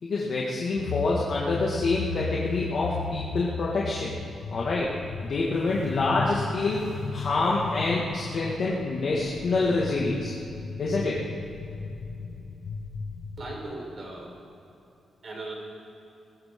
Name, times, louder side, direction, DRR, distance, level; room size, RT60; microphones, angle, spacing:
voice 1, 0.0-4.1 4.5-4.9 5.2-10.3 10.8-11.2, left 3 dB, 50° left, -5 dB, 2.0 m, -27 dB
sound 1, 0.8-13.6, left 5 dB, 80° left, 1.0 m, -36 dB
voice 2, 13.4-14.3 15.2-15.5, right 2 dB, 45° right, -2 dB, 4.5 m, -37 dB
20.5 x 16.5 x 3.8 m, 2.8 s
wide cardioid pair, 145°, 0 cm